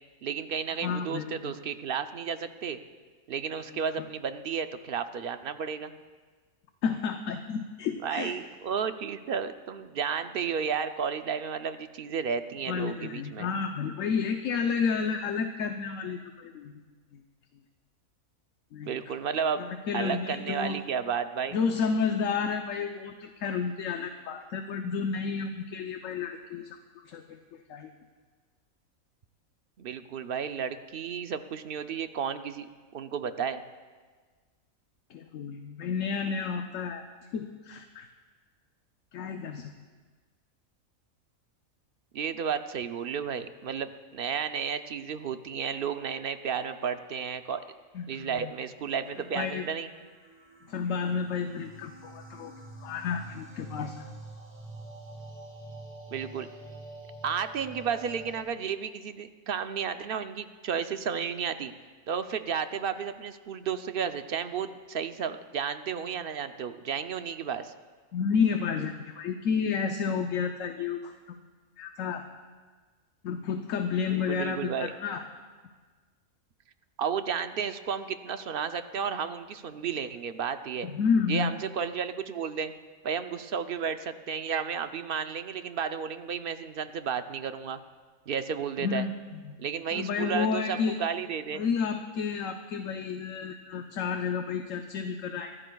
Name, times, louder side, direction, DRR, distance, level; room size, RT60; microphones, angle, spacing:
voice 1, 0.2-2.8 3.3-5.9 8.0-13.5 18.8-19.6 19.9-21.6 29.8-32.7 32.9-33.6 42.1-47.6 48.1-49.9 56.1-56.5 57.2-61.7 62.1-67.7 74.1-74.9 77.0-80.9 81.3-82.7 83.0-87.8 88.3-89.1 89.6-91.6, right 7 dB, 55° right, 9 dB, 0.6 m, -32 dB
voice 2, 0.8-1.5 6.8-8.3 12.7-16.8 18.7-18.9 19.6-20.8 21.5-26.7 27.1-27.4 27.7-27.9 35.1-37.1 37.3-38.1 39.1-39.7 47.9-48.5 49.3-49.6 50.7-52.5 52.8-54.1 68.1-71.1 71.8-72.3 73.2-75.2 80.8-81.5 88.8-89.6 89.9-91.0 91.5-95.5, left 6 dB, 70° left, 5 dB, 1.1 m, -31 dB
sound 1, 47.0-58.4, right 2 dB, 30° right, 2.1 m, -47 dB
26.5 x 14.0 x 2.3 m, 1.4 s
omnidirectional pair, 1.4 m